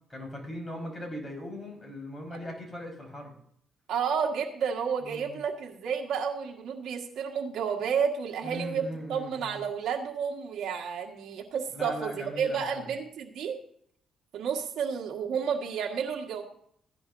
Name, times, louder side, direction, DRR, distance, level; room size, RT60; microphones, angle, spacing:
voice 1, 0.1-3.3 5.0-5.4 8.4-9.6 11.7-12.9, equal, 20° left, 1 dB, 4.9 m, -39 dB
voice 2, 3.9-13.6 14.3-16.4, right 6 dB, 75° right, 0 dB, 1.6 m, -31 dB
15.5 x 10.5 x 2.7 m, 0.66 s
cardioid pair, 90°, 0 cm